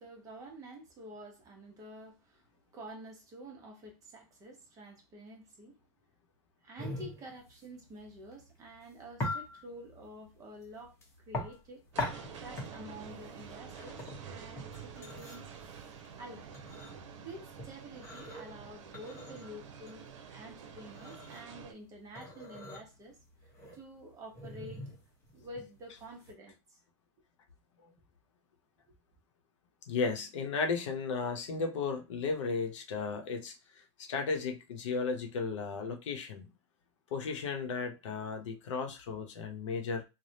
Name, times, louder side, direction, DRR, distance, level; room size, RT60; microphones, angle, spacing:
voice 1, 0.0-2.5 2.7-5.8 6.6-11.8 12.4-15.5 16.2-16.6 17.1-23.2 23.7-25.0 25.3-26.8, right 1 dB, 20° right, 0.9 m, -49 dB
sound 1, 6.8-26.3, left 2 dB, 15° left, 0.9 m, -43 dB
sound 2, 11.9-21.7, right 7 dB, 75° right, 0.7 m, -48 dB
voice 2, 29.9-36.5 37.1-40.0, left 4 dB, 80° left, 0.8 m, -35 dB
3.3 x 2.2 x 2.7 m
supercardioid pair, 155°, 16 cm